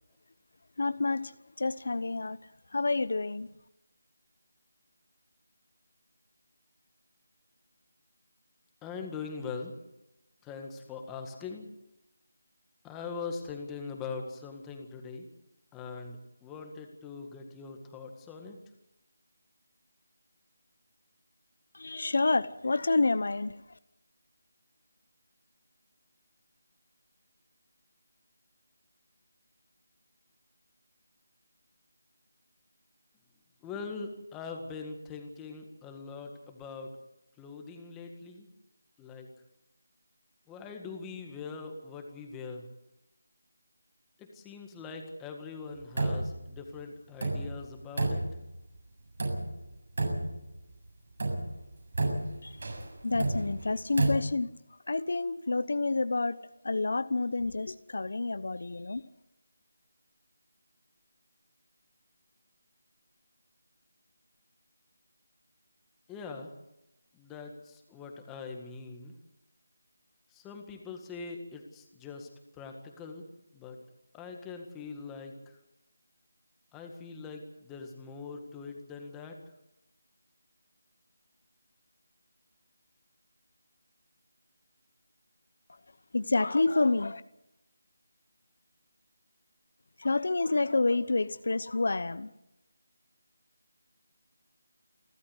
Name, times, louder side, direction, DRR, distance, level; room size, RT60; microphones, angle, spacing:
voice 1, 0.8-1.3 1.6-2.4 2.7-3.5 21.7-23.5 52.4-52.5 53.0-54.5 54.9-56.4 56.6-59.0 86.1-87.2 90.0-92.3, left 3 dB, 60° left, 14 dB, 0.9 m, -28 dB
voice 2, 8.8-9.7 10.4-11.7 12.8-15.3 15.7-18.6 33.6-36.9 37.4-38.5 39.0-39.3 40.5-42.6 44.2-48.2 66.1-66.5 67.1-69.1 70.3-72.3 72.6-73.2 73.5-73.8 74.1-75.3 76.7-79.4, left 4 dB, 5° left, 3 dB, 1.8 m, -42 dB
sound 1, 45.7-46.5 46.7-46.8 47.2-48.7 49.2-49.7 50.0-50.7 51.2-54.1, right 2 dB, 60° right, 7.5 m, -31 dB
28.5 x 12.5 x 8.0 m, 0.88 s
figure-of-eight pair, 175°, 0 cm